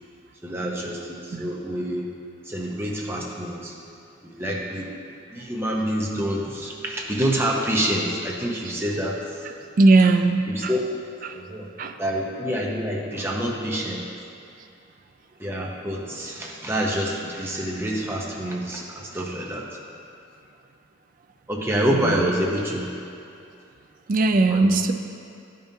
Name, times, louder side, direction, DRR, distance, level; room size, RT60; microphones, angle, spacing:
voice 1, 0.4-2.0 2.5-3.7 4.2-4.9 5.3-9.2 10.5-11.0 11.3-11.7 12.0-14.0 15.4-19.7 21.5-22.9 24.5-24.8, equal, 10° right, -2 dB, 0.7 m, -27 dB
voice 2, 9.8-10.7 11.2-11.4 11.8-12.0 21.9-22.2 24.1-24.9, right 3 dB, 40° right, 6 dB, 0.3 m, -19 dB
11.5 x 5.2 x 2.7 m, 2.5 s
head